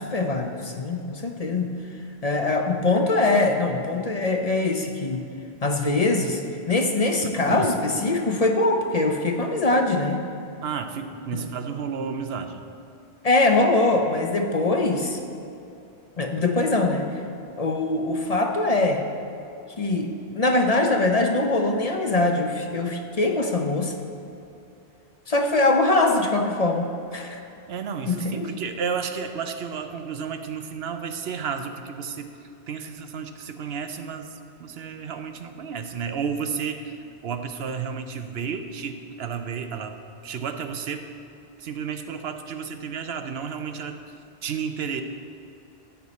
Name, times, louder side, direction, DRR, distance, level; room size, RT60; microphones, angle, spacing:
voice 1, 0.0-1.7 2.2-5.3 5.6-10.2 11.3-11.4 13.2-15.2 16.2-17.1 17.6-19.0 19.8-23.9 25.3-27.4 28.1-28.5, left 2 dB, 40° left, 3 dB, 0.7 m, -23 dB
voice 2, 7.2-7.7 10.6-12.6 27.7-32.3 32.7-37.0 37.2-40.0 40.2-41.0 41.6-44.0 44.4-45.0, right 6 dB, 75° right, 8 dB, 0.9 m, -32 dB
13.0 x 8.3 x 4.2 m, 2.7 s
omnidirectional pair, 1.1 m